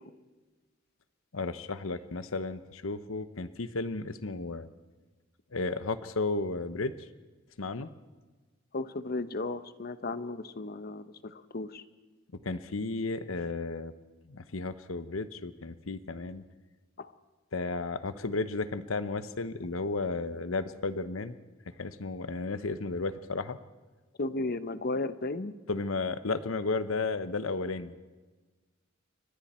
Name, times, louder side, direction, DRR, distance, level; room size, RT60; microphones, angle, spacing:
voice 1, 1.3-4.7 5.5-6.9 7.6-7.9 12.4-13.9 14.3-16.4 17.5-21.4 21.8-23.6 25.7-27.9, left 3 dB, 90° left, 12 dB, 1.0 m, -33 dB
voice 2, 8.7-11.8 17.0-17.1 24.2-25.5, left 2 dB, 50° left, 12 dB, 1.0 m, -34 dB
29.0 x 24.5 x 4.4 m, 1.3 s
head